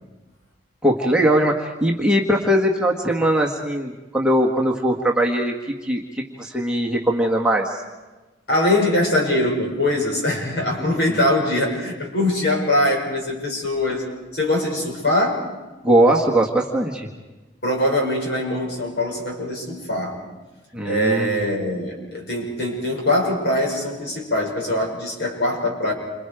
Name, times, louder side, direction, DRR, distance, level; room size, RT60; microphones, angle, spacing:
voice 1, 0.8-5.5 5.8-7.8 15.8-17.1 20.7-21.4, right 1 dB, 5° right, -1 dB, 1.6 m, -20 dB
voice 2, 8.5-14.0 14.3-15.5 17.6-20.2 20.8-25.9, left 1 dB, 60° left, -1 dB, 6.4 m, -22 dB
29.0 x 27.0 x 5.0 m, 1.2 s
head